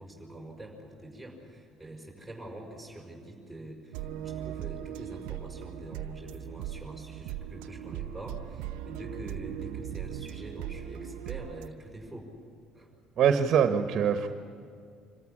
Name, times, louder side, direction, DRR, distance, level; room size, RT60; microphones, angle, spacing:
voice 1, 0.0-12.3 12.7-12.9, right 1 dB, ahead, -1 dB, 5.7 m, -44 dB
sound 1, 3.9-11.7, right 11 dB, 75° right, 0.7 m, -39 dB
voice 2, 13.2-14.3, right 7 dB, 55° right, 8 dB, 1.2 m, -23 dB
26.0 x 14.5 x 10.0 m, 2.3 s
hypercardioid pair, 70°, 0 cm